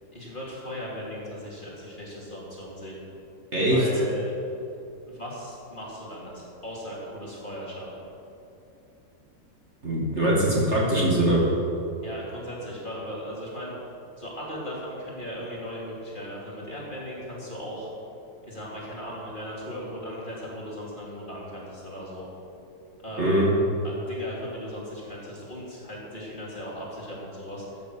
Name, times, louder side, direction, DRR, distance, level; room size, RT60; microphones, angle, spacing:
voice 1, 0.1-3.0 3.7-4.3 5.1-8.0 12.0-13.8 14.2-17.9 18.4-22.2 23.0-23.5 23.8-27.8, equal, 25° left, -5 dB, 3.0 m, -37 dB
voice 2, 3.5-3.8 9.8-11.4 23.2-23.5, right 1 dB, 35° right, -5 dB, 2.5 m, -22 dB
14.0 x 8.7 x 6.4 m, 2.8 s
omnidirectional pair, 2.0 m